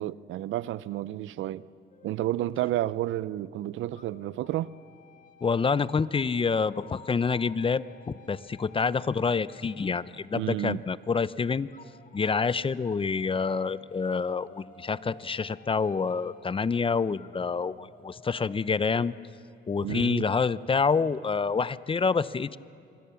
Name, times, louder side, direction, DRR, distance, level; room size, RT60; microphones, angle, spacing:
voice 1, 0.0-1.6 2.0-4.7 10.3-10.8 19.8-20.3, right 14 dB, 80° right, 0.6 m, -31 dB
sound 1, 1.9-3.5 4.0-11.1 11.7-19.2, left 5 dB, 40° left, 1.7 m, -55 dB
voice 2, 5.4-11.7 12.1-19.1 19.7-22.6, left 5 dB, 25° left, 0.6 m, -27 dB
26.0 x 23.0 x 7.0 m
cardioid pair, 90°, 20 cm